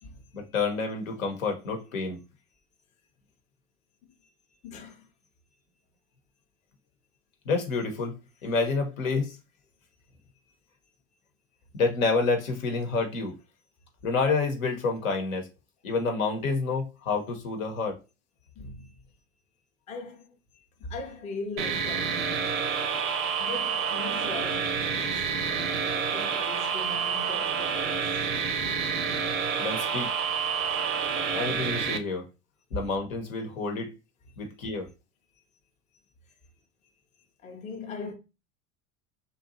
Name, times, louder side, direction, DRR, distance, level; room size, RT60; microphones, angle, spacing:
voice 1, 0.3-2.2 7.4-8.2 8.4-9.4 11.7-13.3 14.0-15.5 15.8-18.0 29.6-30.1 31.3-32.3 32.7-33.9 34.4-34.9, left 4 dB, 80° left, 0.9 m, -28 dB
voice 2, 4.6-5.1 18.6-19.0 19.9-22.7 23.4-28.2 35.4-35.5 37.4-38.1, left 3 dB, 20° left, 0.4 m, -40 dB
sound 1, 21.6-32.0, right 6 dB, 80° right, 0.6 m, -28 dB
2.7 x 2.2 x 2.7 m
hypercardioid pair, 85°, 41 cm